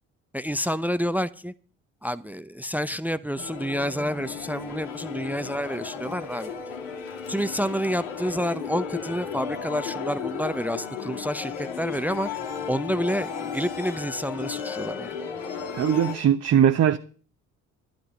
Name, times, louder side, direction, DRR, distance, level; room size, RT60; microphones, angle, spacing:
voice 1, 0.3-1.5 2.0-6.5 7.3-12.3 12.7-15.1, equal, 5° right, 0.7 m, -29 dB
sound 1, 3.4-16.2, left 6 dB, 80° left, 2.1 m, -34 dB
voice 2, 15.7-17.0, right 9 dB, 40° right, 0.9 m, -20 dB
11.5 x 10.5 x 5.4 m
hypercardioid pair, 50°, 39 cm